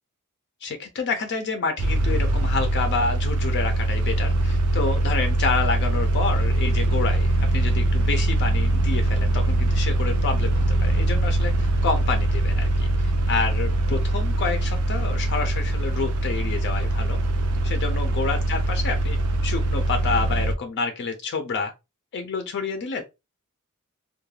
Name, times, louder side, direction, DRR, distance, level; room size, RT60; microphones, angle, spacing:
voice 1, 0.6-17.2 17.6-19.2 19.4-21.7 22.1-23.0, left 4 dB, 55° left, 0.4 m, -29 dB
sound 1, 1.8-20.6, right 2 dB, 85° right, 0.4 m, -22 dB
2.3 x 2.2 x 3.1 m
head